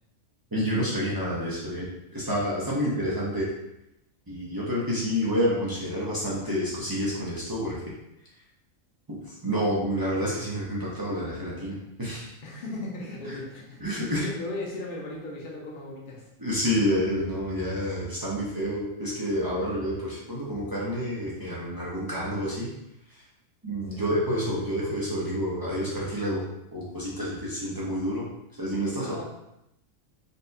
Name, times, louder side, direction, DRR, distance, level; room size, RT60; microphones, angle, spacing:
voice 1, 0.5-3.5 4.3-7.8 9.1-12.3 13.8-14.3 16.4-22.7 23.6-26.5 26.7-28.2 28.6-29.2, equal, 35° right, -7 dB, 0.3 m, -28 dB
voice 2, 12.4-13.8 14.2-16.3 23.9-24.0 28.9-29.2, left 2 dB, 45° left, -2 dB, 0.7 m, -37 dB
4.1 x 2.2 x 2.6 m, 0.85 s
omnidirectional pair, 1.5 m